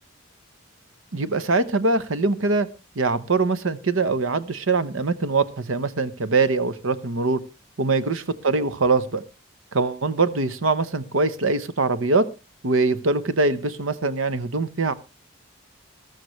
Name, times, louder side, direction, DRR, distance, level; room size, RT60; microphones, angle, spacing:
voice 1, 1.1-2.7 3.0-7.4 7.8-9.2 9.7-12.3 12.6-14.9, right 3 dB, 80° right, 14 dB, 0.9 m, -23 dB
14.5 x 13.5 x 3.2 m, 0.28 s
head